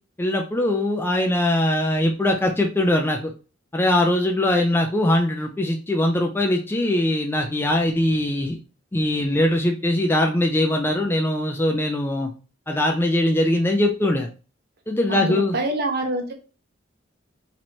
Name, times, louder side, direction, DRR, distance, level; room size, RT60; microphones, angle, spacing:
voice 1, 0.2-3.3 3.7-8.6 8.9-12.3 12.7-14.3 14.9-15.5, left 1 dB, 10° left, 2 dB, 0.4 m, -21 dB
voice 2, 15.1-16.3, right 1 dB, 55° right, 3 dB, 0.9 m, -26 dB
3.0 x 2.9 x 4.2 m, 0.34 s
head